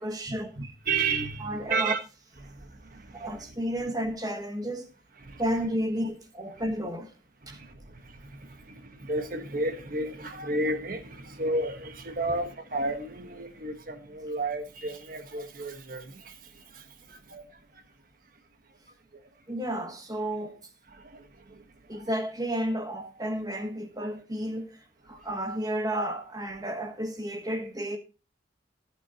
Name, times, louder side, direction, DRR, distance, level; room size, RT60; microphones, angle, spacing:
voice 1, 0.0-0.7 1.4-1.9 3.1-4.9 5.4-7.1 7.5-7.6 19.5-20.6 21.9-28.0, equal, 20° right, 1.3 m, -32 dB
voice 2, 0.6-2.0 2.4-3.5 3.8-3.9 5.2-5.4 6.5-6.6 7.4-17.8 18.7-18.8 19.1-19.2 20.9-22.1 24.0-24.1 25.1-25.3, right 2 dB, 50° right, 1.3 m, -33 dB
17.0 x 6.2 x 2.9 m
head